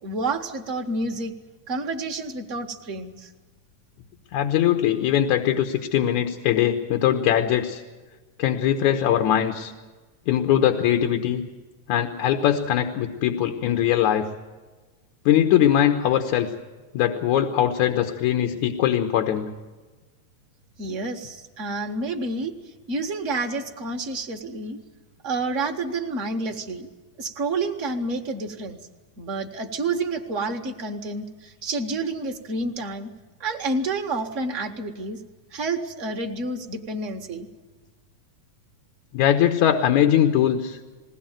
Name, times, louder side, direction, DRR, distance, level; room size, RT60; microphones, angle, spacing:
voice 1, 0.0-1.3 1.7-3.3 20.8-22.5 22.9-24.8 25.2-26.9 27.2-28.8 29.2-33.1 33.4-35.2 35.5-37.5, right 3 dB, 35° right, 4 dB, 1.3 m, -29 dB
voice 2, 4.3-7.8 8.4-9.7 10.3-11.4 11.9-14.3 15.3-16.5 16.9-19.5 39.1-40.8, left 10 dB, 80° left, 5 dB, 2.5 m, -21 dB
21.0 x 17.5 x 9.0 m, 1.3 s
omnidirectional pair, 3.3 m